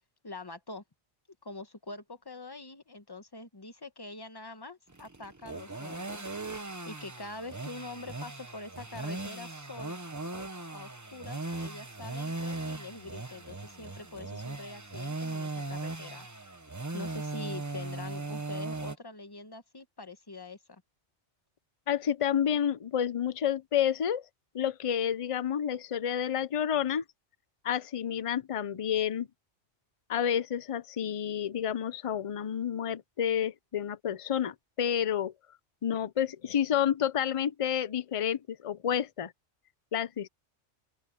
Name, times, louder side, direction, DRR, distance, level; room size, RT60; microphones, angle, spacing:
voice 1, 0.2-0.8 1.4-6.2 6.5-9.9 10.3-16.5 16.9-20.8, left 2 dB, 20° left, 1.1 m, -45 dB
sound 1, 4.9-19.0, right 2 dB, 15° right, 0.9 m, -38 dB
voice 2, 21.9-24.2 24.5-27.0 27.6-29.3 30.1-35.3 35.8-39.3 39.9-40.3, left 9 dB, 40° left, 0.5 m, -30 dB
open air
omnidirectional pair, 1.2 m